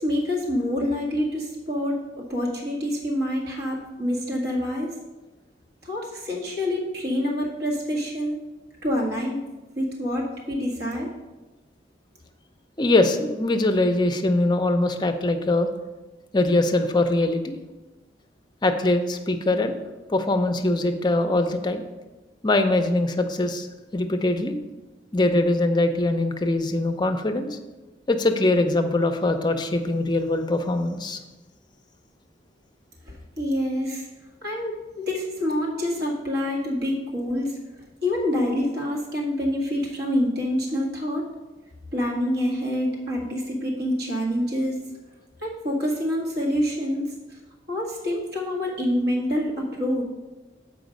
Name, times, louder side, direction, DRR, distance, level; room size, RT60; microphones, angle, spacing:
voice 1, 0.0-4.9 5.8-8.4 8.8-9.4 9.8-11.1 33.1-34.1 34.4-37.5 38.0-41.2 41.9-44.8 45.4-47.1 47.7-50.0, left 1 dB, 60° right, -3 dB, 1.7 m, -26 dB
voice 2, 12.8-15.7 16.3-17.6 18.6-19.8 20.1-21.8 22.4-23.7 23.9-24.6 25.1-27.6 28.1-31.2, left 2 dB, 25° left, 6 dB, 0.5 m, -22 dB
7.1 x 4.9 x 5.2 m, 1.2 s
head